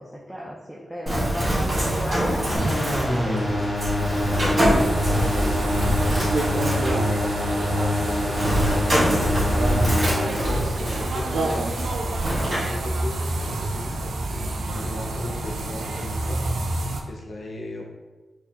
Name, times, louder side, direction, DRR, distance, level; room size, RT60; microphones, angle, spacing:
voice 1, 0.0-3.7, equal, 5° right, -4 dB, 0.4 m, -35 dB
Bird, 1.1-12.6, equal, 35° right, 1.4 m, -25 dB
sound 1, 2.6-10.2, left 1 dB, 25° left, 1.4 m, -25 dB
sound 2, 4.6-17.0, right 2 dB, 85° right, 0.4 m, -28 dB
voice 2, 5.2-8.4 9.1-11.7 12.4-16.4 17.1-17.9, left 1 dB, 70° left, 0 dB, 0.6 m, -36 dB
4.2 x 2.4 x 2.8 m, 1.2 s
wide cardioid pair, 90°, 0 cm